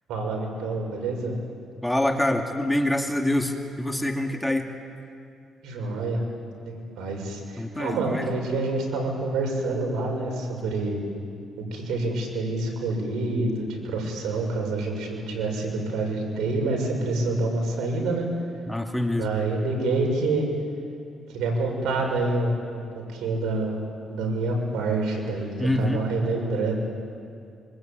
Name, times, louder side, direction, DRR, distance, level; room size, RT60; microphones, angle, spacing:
voice 1, 0.1-1.4 5.6-6.2 6.6-11.0 11.6-18.3 19.2-20.5 21.3-23.8 24.1-26.7, right 2 dB, 80° right, 1 dB, 6.6 m, -27 dB
voice 2, 1.8-4.7 7.6-8.3 18.7-19.3 25.6-26.0, left 1 dB, 5° left, 3 dB, 2.4 m, -25 dB
25.5 x 24.5 x 9.1 m, 2.4 s
cardioid pair, 90°, 0 cm